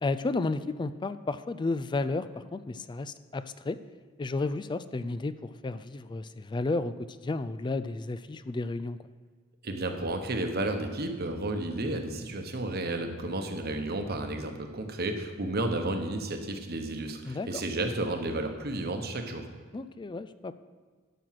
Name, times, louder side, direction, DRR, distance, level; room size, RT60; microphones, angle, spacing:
voice 1, 0.0-3.8 4.2-9.0 17.3-17.6 19.7-20.5, left 3 dB, 25° left, 13 dB, 0.3 m, -32 dB
voice 2, 9.6-19.5, right 2 dB, 50° right, 5 dB, 1.1 m, -32 dB
12.0 x 6.2 x 5.9 m, 1.4 s
head